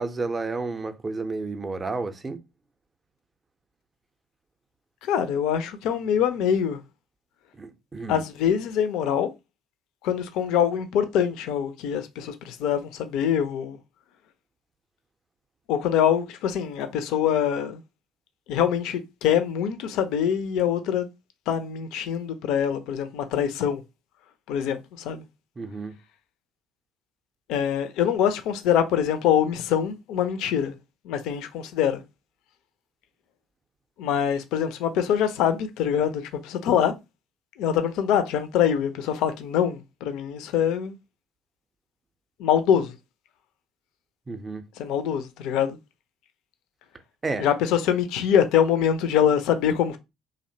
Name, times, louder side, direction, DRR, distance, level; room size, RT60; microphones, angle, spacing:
voice 1, 0.0-2.4 7.5-8.2 25.6-26.0 44.3-44.6 47.2-47.5, right 3 dB, 25° right, 0.4 m, -31 dB
voice 2, 5.0-6.8 8.1-9.3 10.0-13.8 15.7-17.8 18.5-21.1 21.5-23.8 24.5-25.2 27.5-30.8 31.0-32.0 34.0-36.9 37.6-40.9 42.4-43.0 44.8-45.8 47.4-50.0, left 9 dB, 60° left, 0.3 m, -24 dB
2.6 x 2.0 x 2.6 m
figure-of-eight pair, 55°, 0 cm